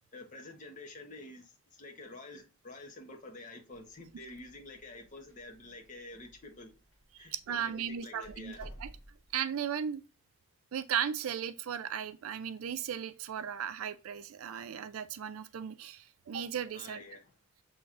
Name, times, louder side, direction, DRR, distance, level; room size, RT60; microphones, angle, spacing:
voice 1, 0.1-6.7 7.2-8.6 16.7-17.2, left 2 dB, 35° left, 0.9 m, -48 dB
Door, 3.8-9.3, equal, 65° left, 1.8 m, -54 dB
voice 2, 7.2-8.9 9.3-10.0 10.7-17.0, right 8 dB, 85° right, 0.4 m, -36 dB
7.0 x 3.1 x 2.4 m
head